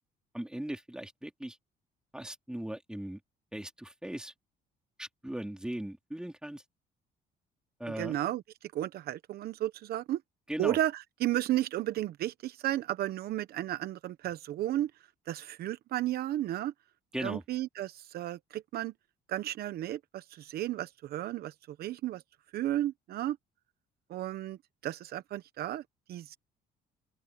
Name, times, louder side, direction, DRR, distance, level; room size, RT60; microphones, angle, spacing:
voice 1, 0.3-1.6 2.1-3.2 3.5-4.3 5.0-6.6 7.8-8.2 10.5-10.8 17.1-17.4, right 1 dB, 5° right, 4.3 m, -38 dB
voice 2, 8.0-10.2 10.6-14.9 15.3-16.7 17.2-18.9 19.3-22.2 22.5-23.4 24.1-24.6 24.8-25.8 26.1-26.4, right 13 dB, 65° right, 1.0 m, -33 dB
open air
cardioid pair, 110°, 17 cm